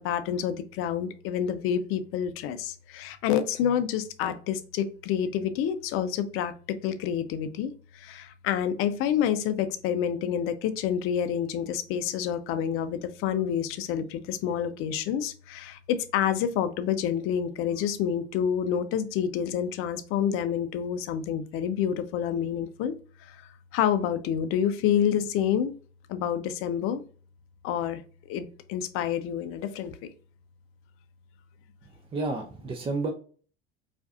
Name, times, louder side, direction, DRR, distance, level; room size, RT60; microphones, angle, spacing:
voice 1, 0.0-22.9 23.2-23.4 23.7-25.7 26.1-27.0 27.6-28.0 28.3-30.0, left 9 dB, 40° left, 11 dB, 0.6 m, -28 dB
voice 2, 32.1-33.1, right 3 dB, 15° right, 2 dB, 0.5 m, -30 dB
4.6 x 2.6 x 2.4 m, 0.40 s
figure-of-eight pair, 80°, 34 cm